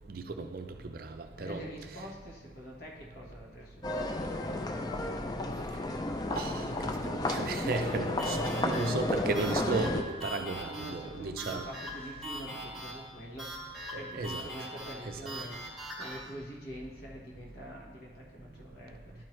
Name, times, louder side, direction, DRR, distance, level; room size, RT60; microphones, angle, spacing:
voice 1, 1.4-4.8 6.3-6.4 7.0-7.5 10.5-15.6 16.0-19.2, equal, 55° left, 1.3 m, -46 dB
sound 1, 3.8-10.0, left 2 dB, 20° left, 0.3 m, -32 dB
voice 2, 7.3-8.4 8.7-11.7 13.9-14.4, right 3 dB, 50° right, 0.4 m, -33 dB
sound 2, 8.2-16.2, equal, ahead, 1.1 m, -42 dB
11.0 x 4.6 x 3.1 m
head